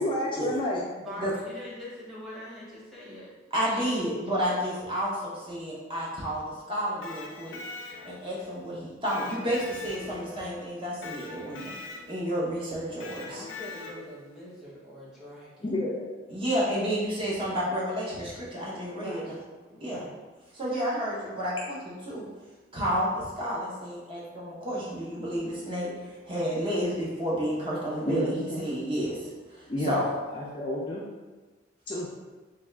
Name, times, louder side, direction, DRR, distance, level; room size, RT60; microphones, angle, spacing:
voice 1, 0.0-0.8 15.6-16.1 28.1-28.7 29.7-30.0 30.3-31.1 31.9-32.1, left 1 dB, 25° left, -4 dB, 0.3 m, -30 dB
voice 2, 0.8-3.3 13.1-15.7 18.9-19.4 19.7-20.2, equal, ahead, -9 dB, 1.0 m, -43 dB
voice 3, 3.5-7.6 8.0-11.7 12.1-13.4 16.3-19.4 19.8-20.0 20.5-22.3 22.7-30.1, equal, 25° right, -6 dB, 0.7 m, -31 dB
Electric guitar, 6.8-8.4 9.1-10.5 11.0-12.3 13.0-14.2, left 4 dB, 85° left, 0.5 m, -42 dB
3.4 x 2.3 x 3.2 m, 1.2 s
head